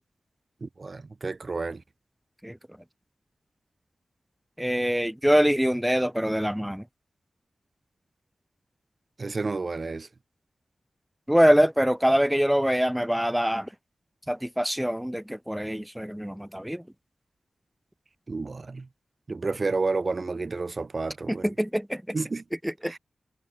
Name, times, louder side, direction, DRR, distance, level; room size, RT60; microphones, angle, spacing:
voice 1, 0.6-1.8 9.2-10.1 18.3-18.9 19.3-21.5 22.1-22.4 22.9-23.0, right 3 dB, 45° right, 1.2 m, -30 dB
voice 2, 4.6-6.8 11.3-13.7 14.3-16.8 21.3-22.2 22.6-23.0, equal, 5° right, 0.6 m, -24 dB
cardioid pair, 70°, 0 cm